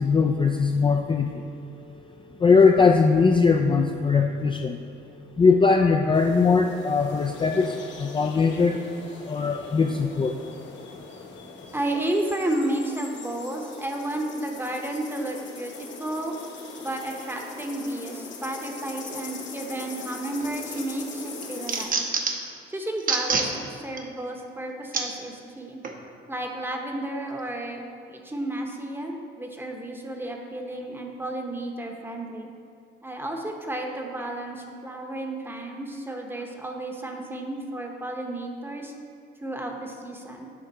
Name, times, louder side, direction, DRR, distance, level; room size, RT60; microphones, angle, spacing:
voice 1, 0.0-1.4 2.4-4.8 5.4-8.8 9.3-10.4 11.0-11.1, left 4 dB, 25° left, 3 dB, 0.4 m, -20 dB
sound 1, 6.1-21.9, left 4 dB, 65° left, 1.0 m, -41 dB
voice 2, 11.7-16.4 16.8-22.1 22.7-25.8 26.3-32.5 33.0-38.9 39.4-40.5, right 1 dB, 10° right, 2 dB, 0.9 m, -32 dB
sound 2, 20.4-20.8 21.2-22.5 23.0-23.5 24.0-24.1 24.9-25.1 25.8-26.0, right 4 dB, 45° right, 0.8 m, -26 dB
8.3 x 3.6 x 5.4 m, 2.5 s
cardioid pair, 90°, 20 cm